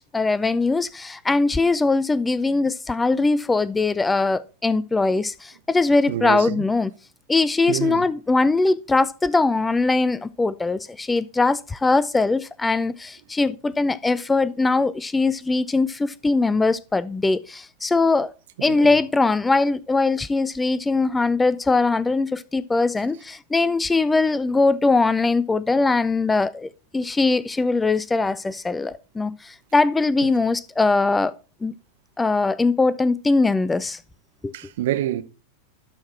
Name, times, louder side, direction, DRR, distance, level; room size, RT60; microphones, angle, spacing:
voice 1, 0.0-6.9 7.3-18.3 18.6-31.3 31.6-31.7 32.2-34.0 34.4-34.5, left 3 dB, 10° left, 0.3 m, -21 dB
voice 2, 6.1-6.6 7.7-8.1 18.6-19.0 34.5-35.2, right 13 dB, 55° right, 0.7 m, -27 dB
12.0 x 4.6 x 4.3 m
figure-of-eight pair, 90°, 0 cm